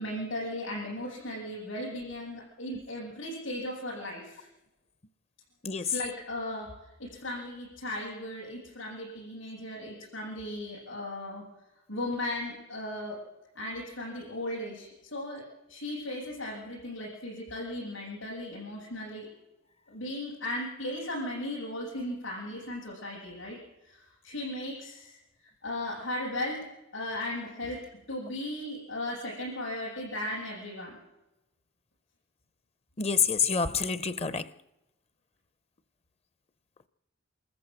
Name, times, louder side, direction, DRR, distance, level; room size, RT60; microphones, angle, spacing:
voice 1, 0.0-4.5 5.8-6.7 7.0-11.4 11.9-13.2 13.5-15.4 15.7-19.3 19.9-23.6 23.8-25.2 25.6-26.6 26.9-27.8 28.1-31.0, left 1 dB, 70° left, -6 dB, 7.6 m, -36 dB
voice 2, 33.0-34.4, left 6 dB, 30° left, 15 dB, 0.6 m, -27 dB
26.5 x 14.0 x 7.7 m, 0.98 s
head